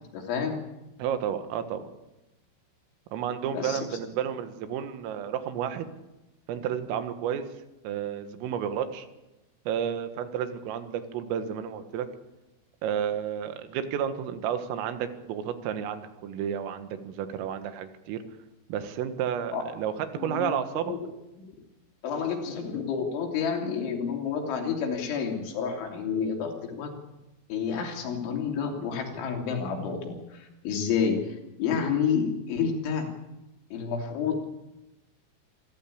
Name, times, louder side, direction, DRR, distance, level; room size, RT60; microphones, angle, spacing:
voice 1, 0.1-0.6 3.5-3.9 19.5-19.6 20.2-20.5 20.8-21.0 21.4-21.6 22.0-26.9 27.5-33.1 33.7-34.5, left 6 dB, 70° left, 2 dB, 5.4 m, -29 dB
voice 2, 1.0-1.9 3.1-5.9 6.5-7.4 7.8-9.1 9.7-12.1 12.8-18.2 18.7-20.9, right 9 dB, 90° right, 9 dB, 4.2 m, -31 dB
27.0 x 15.0 x 8.7 m, 1.0 s
omnidirectional pair, 5.8 m